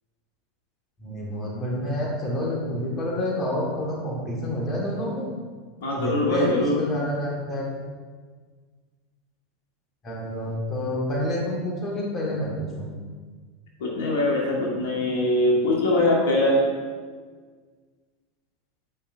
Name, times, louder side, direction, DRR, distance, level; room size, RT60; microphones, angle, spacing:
voice 1, 1.0-5.3 6.0-7.7 10.0-12.9, left 1 dB, 35° left, -2 dB, 1.7 m, -28 dB
voice 2, 5.8-6.8 13.8-16.6, left 1 dB, 75° left, -3 dB, 1.7 m, -22 dB
9.6 x 5.3 x 2.6 m, 1.5 s
hypercardioid pair, 95°, 0 cm